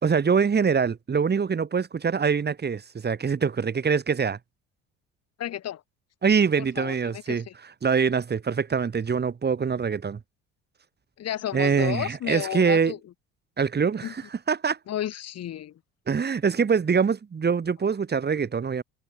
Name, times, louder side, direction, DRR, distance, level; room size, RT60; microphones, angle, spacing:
voice 1, 0.0-4.4 6.2-7.4 7.8-10.2 11.5-12.9 13.6-14.8 16.1-18.8, right 6 dB, 35° right, 4.2 m, -24 dB
voice 2, 5.4-5.8 6.8-7.5 11.2-13.0 14.0-14.1 14.9-15.7, left 11 dB, 60° left, 6.4 m, -32 dB
supercardioid pair, 75°, 29 cm